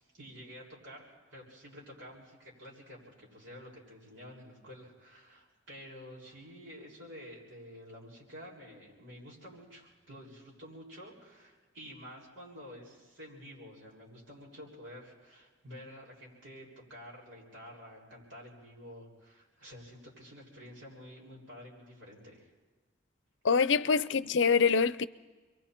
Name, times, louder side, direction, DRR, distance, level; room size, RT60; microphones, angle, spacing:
voice 1, 0.0-22.5, equal, 85° right, 7.1 m, -50 dB
voice 2, 23.4-25.0, left 5 dB, 70° left, 0.6 m, -25 dB
28.5 x 23.0 x 4.6 m
head